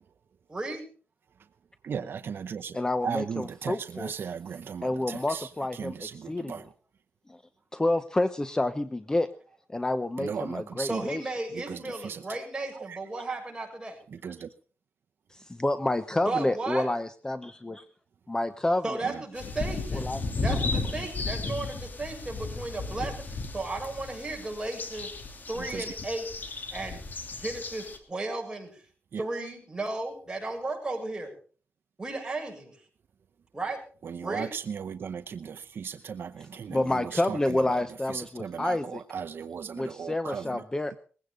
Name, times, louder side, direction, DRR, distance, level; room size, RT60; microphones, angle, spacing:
voice 1, 0.5-0.9 10.9-14.0 16.3-16.9 18.8-20.1 20.4-25.1 25.5-26.3 26.7-27.0 27.4-28.8 29.2-31.3 32.0-32.8 33.5-33.8 34.2-34.5, right 2 dB, 20° right, 1 dB, 7.3 m, -34 dB
voice 2, 1.8-6.7 10.2-11.1 11.5-12.2 12.7-13.0 14.1-14.5 19.0-19.2 25.6-25.9 29.1-29.2 34.0-37.8 38.1-40.6, right 7 dB, 65° right, 8 dB, 0.8 m, -37 dB
voice 3, 2.7-4.1 4.8-5.9 6.3-6.6 7.3-7.4 7.7-9.3 9.7-11.2 15.3-17.9 18.3-19.0 19.9-20.2 36.7-39.0 39.8-41.0, left 1 dB, 15° left, 11 dB, 0.9 m, -29 dB
sound 1, 19.4-28.0, left 3 dB, 50° left, 2.9 m, -34 dB
20.5 x 16.5 x 3.8 m, 0.39 s
wide cardioid pair, 110°, 4 cm